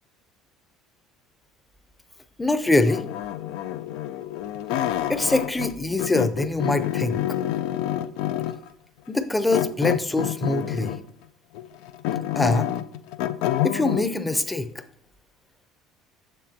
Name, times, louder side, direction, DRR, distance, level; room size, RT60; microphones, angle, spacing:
voice 1, 2.4-3.1 5.1-7.4 9.1-10.9 12.4-12.7 13.6-14.7, left 2 dB, 10° left, 11 dB, 0.6 m, -24 dB
sound 1, 2.8-5.7 6.0-8.7 9.5-11.1 11.5-14.0, left 12 dB, 75° left, 0.4 m, -27 dB
7.3 x 7.1 x 2.8 m, 0.66 s
supercardioid pair, 85°, 0 cm